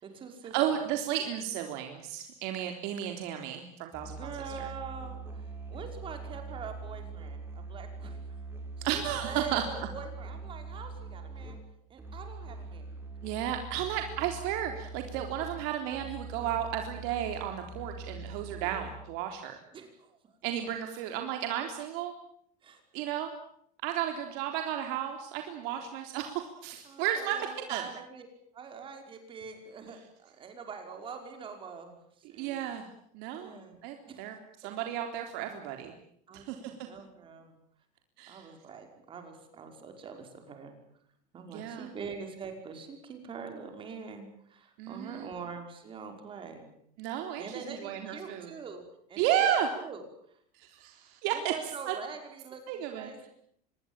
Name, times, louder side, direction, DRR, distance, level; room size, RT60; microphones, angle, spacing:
voice 1, 0.0-0.8 4.1-5.5 5.7-8.4 8.8-11.6 11.9-12.9 19.7-20.3 22.6-22.8 25.6-25.9 26.8-28.3 28.5-32.0 32.3-32.7 33.4-33.8 34.1-34.2 36.3-37.6 38.3-40.8 41.3-46.8 47.4-49.4 49.7-50.0 51.3-53.3, right 5 dB, 25° right, 5 dB, 5.3 m, -44 dB
voice 2, 0.5-4.3 4.6-4.7 8.8-9.6 13.2-19.6 20.4-22.1 22.9-23.3 23.8-27.8 32.4-32.9 33.1-33.5 33.8-34.4 34.6-35.9 36.3-36.7 38.2-38.5 41.5-41.9 44.8-45.3 47.0-48.5 49.2-49.7 50.6-51.5 51.9-52.0 52.7-53.3, right 10 dB, 60° right, 4 dB, 3.7 m, -33 dB
Musical instrument, 3.9-19.2, right 3 dB, 10° right, 6.4 m, -43 dB
26.0 x 21.5 x 9.0 m, 0.68 s
cardioid pair, 155°, 19 cm